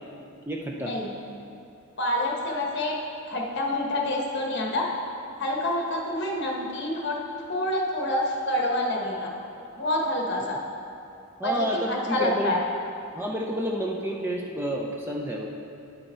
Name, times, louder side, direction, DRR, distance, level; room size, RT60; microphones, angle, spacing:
voice 1, 0.5-0.9 11.4-12.5 13.1-15.5, equal, 10° right, -1 dB, 0.4 m, -30 dB
voice 2, 2.0-3.0 3.3-4.9 5.4-9.3 9.8-10.6 11.4-12.6, left 1 dB, 50° left, -1 dB, 1.1 m, -27 dB
9.5 x 5.6 x 4.3 m, 2.7 s
head